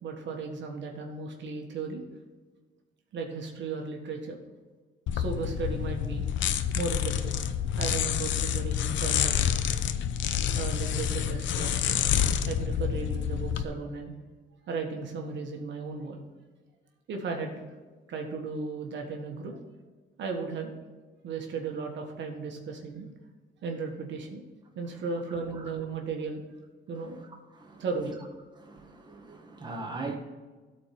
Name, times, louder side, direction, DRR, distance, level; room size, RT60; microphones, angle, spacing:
voice 1, 0.0-2.0 3.1-4.4 5.1-6.2 6.7-7.3 7.8-9.4 10.5-12.0 12.4-14.1 14.7-16.2 17.1-17.6 18.1-19.6 20.2-20.7 21.2-23.1 23.6-24.4 24.7-26.4 26.9-27.2 27.8-28.2, right 4 dB, 70° right, 1.6 m, -35 dB
sound 1, 5.1-13.6, left 9 dB, 70° left, 0.6 m, -28 dB
voice 2, 27.5-27.8 28.6-30.2, right 3 dB, 20° right, 1.7 m, -40 dB
13.0 x 4.5 x 5.9 m
cardioid pair, 90°, 20 cm